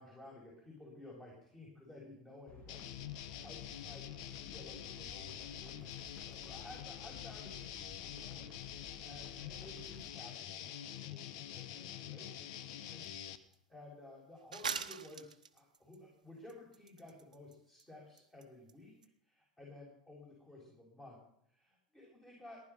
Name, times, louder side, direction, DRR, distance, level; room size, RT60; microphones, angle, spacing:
voice 1, 0.0-8.8 9.0-12.3 12.9-13.1 13.7-18.9 19.2-21.2 21.5-22.6, left 1 dB, 15° left, -3 dB, 6.5 m, -55 dB
sound 1, 2.5-10.1, left 4 dB, 35° left, 2.2 m, -55 dB
sound 2, 2.7-13.4, left 11 dB, 60° left, 1.2 m, -46 dB
sound 3, 13.0-13.1 13.5-13.6 14.5-16.0 16.5-17.5 17.8-17.9 18.2-18.4 18.7-18.8 19.0-19.1, right 6 dB, 85° right, 1.1 m, -41 dB
19.0 x 11.5 x 5.7 m, 0.70 s
hypercardioid pair, 85°, 4 cm